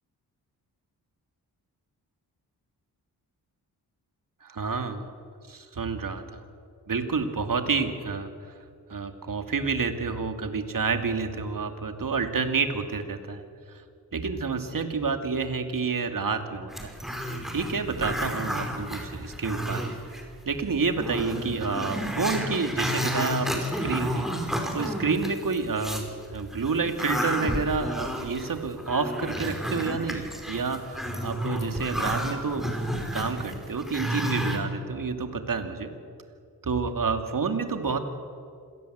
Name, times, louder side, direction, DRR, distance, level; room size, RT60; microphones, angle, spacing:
voice 1, 4.4-5.1 5.5-6.4 6.9-8.3 8.9-13.4 14.1-16.9 17.5-19.9 20.4-24.3 24.7-32.7 33.1-35.9 36.6-38.0, right 4 dB, 55° right, 6 dB, 2.6 m, -29 dB
Growling, 16.7-20.2 20.6-20.7 21.0-26.1 26.5-34.6, equal, ahead, 5.2 m, -31 dB
26.5 x 18.0 x 8.1 m, 2.3 s
cardioid pair, 55°, 39 cm